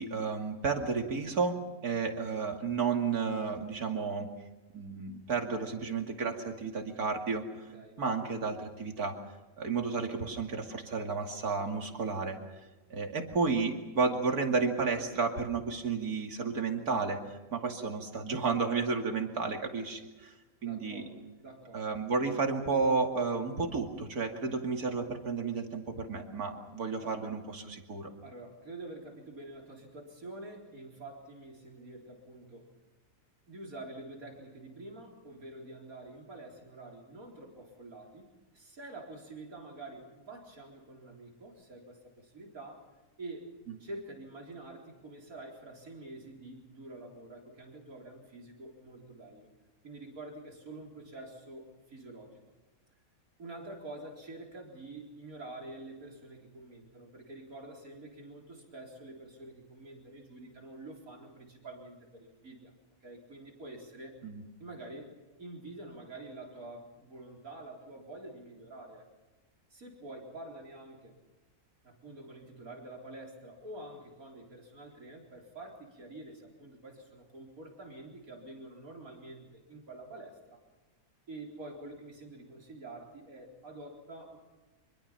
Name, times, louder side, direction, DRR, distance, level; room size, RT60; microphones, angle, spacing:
voice 1, 0.0-4.3 4.7-7.4 8.0-9.2 9.6-12.4 12.9-20.3 20.6-21.1 21.7-28.1 64.2-64.4, right 4 dB, 90° right, 4 dB, 2.9 m, -32 dB
voice 2, 7.5-8.0 20.6-22.0 27.0-27.5 28.2-32.8 33.5-42.9 43.2-43.5 43.8-49.5 49.8-52.4 53.4-62.7 63.0-64.1 64.6-65.1 65.4-69.0 69.7-71.1 71.8-80.6 81.3-84.4, right 2 dB, 70° right, 0 dB, 4.4 m, -47 dB
25.5 x 22.5 x 5.8 m, 1.2 s
omnidirectional pair, 1.5 m